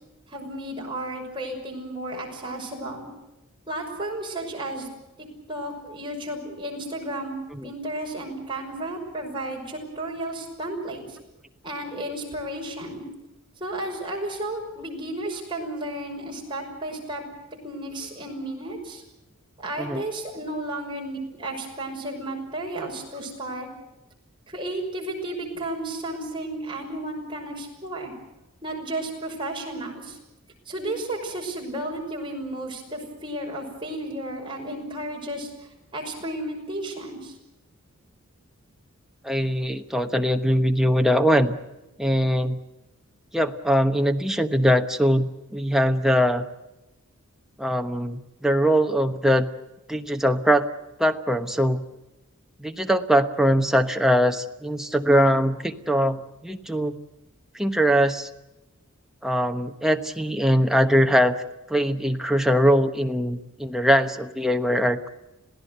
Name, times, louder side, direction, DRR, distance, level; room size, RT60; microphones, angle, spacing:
voice 1, 0.3-3.1 3.7-4.9 5.2-7.4 7.6-11.0 11.6-13.0 13.6-17.2 17.6-19.0 19.6-23.7 24.5-28.1 28.6-30.2 30.7-35.5 35.9-37.3, right 1 dB, 25° right, -1 dB, 6.1 m, -33 dB
voice 2, 39.2-41.6 42.0-42.6 43.3-46.5 47.6-49.5 49.9-50.7 51.0-51.8 52.6-57.0 57.5-58.3 59.2-61.4 61.7-65.1, equal, ahead, 5 dB, 1.1 m, -22 dB
27.0 x 17.0 x 8.1 m, 0.97 s
head